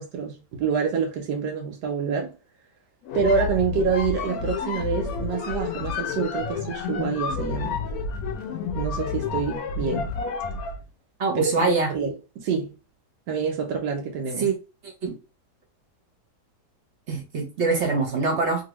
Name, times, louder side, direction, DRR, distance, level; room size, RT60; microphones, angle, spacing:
voice 1, 0.0-2.3 3.1-7.8 8.7-10.1 11.3-12.8 13.3-14.5, right 5 dB, 90° right, 1.3 m, -27 dB
sound 1, 3.0-10.8, left 5 dB, 70° left, 1.0 m, -30 dB
voice 2, 11.2-11.9 14.4-14.5 14.8-15.2 17.1-18.6, right 3 dB, 55° right, 0.9 m, -24 dB
2.8 x 2.6 x 3.0 m
omnidirectional pair, 1.7 m